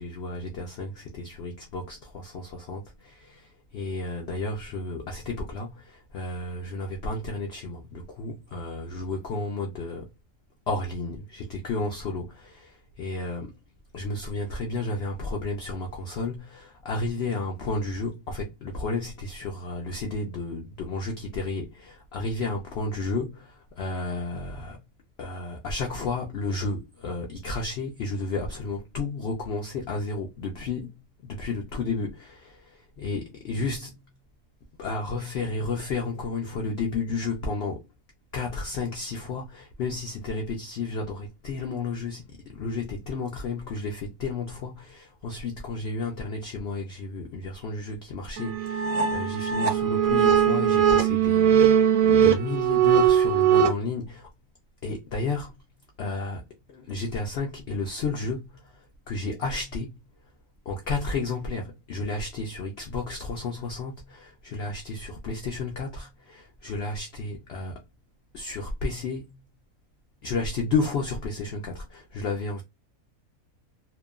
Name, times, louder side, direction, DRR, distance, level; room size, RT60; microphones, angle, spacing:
voice 1, 0.0-10.1 10.7-13.6 13.9-24.8 25.2-34.0 34.8-37.8 38.3-54.3 54.8-55.6 56.0-56.4 56.7-60.0 60.7-67.8 68.3-69.4 70.2-72.6, left 3 dB, 65° left, 0.6 m, -32 dB
sound 1, 48.4-53.7, right 8 dB, 75° right, 0.9 m, -20 dB
2.8 x 2.2 x 2.3 m
omnidirectional pair, 1.6 m